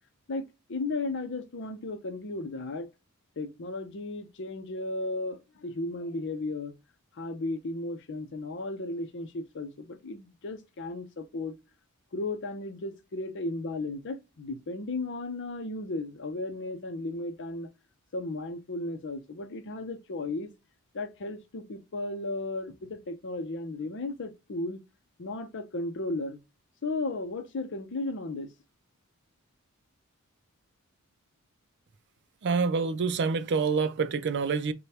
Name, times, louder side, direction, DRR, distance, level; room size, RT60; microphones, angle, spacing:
voice 1, 0.3-2.9 3.4-6.8 7.1-11.6 12.1-17.7 18.1-20.5 20.9-24.8 25.2-26.4 26.8-28.5, left 2 dB, 60° left, 0.7 m, -35 dB
voice 2, 32.4-34.7, right 5 dB, 55° right, 0.4 m, -27 dB
5.0 x 2.2 x 2.8 m
head